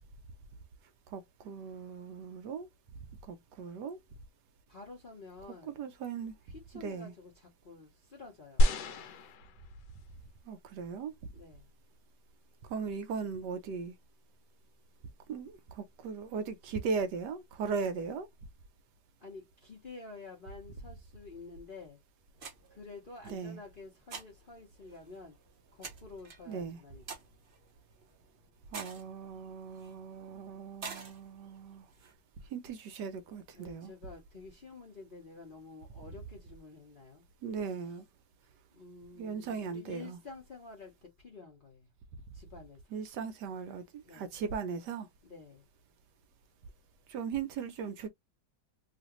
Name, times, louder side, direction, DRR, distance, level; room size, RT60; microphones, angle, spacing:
voice 1, 1.1-2.7 3.3-4.0 5.7-6.3 6.8-7.1 10.5-11.1 12.7-13.9 15.3-18.3 23.3-23.6 26.5-26.8 28.7-31.9 32.5-33.9 37.4-38.0 39.2-40.2 42.9-45.1 47.1-48.1, right 5 dB, 75° right, 1.1 m, -38 dB
voice 2, 4.7-5.8 6.4-8.7 11.3-11.7 19.2-22.0 22.7-25.4 25.7-27.0 33.5-37.2 37.6-38.0 38.7-41.9 42.3-42.9 44.0-44.3 45.2-45.7, left 3 dB, 45° left, 0.7 m, -50 dB
sound 1, 8.6-10.1 10.9-11.0, equal, 75° left, 1.2 m, -28 dB
sound 2, 22.3-32.1, right 5 dB, 50° right, 0.6 m, -50 dB
3.0 x 2.5 x 2.9 m
omnidirectional pair, 2.0 m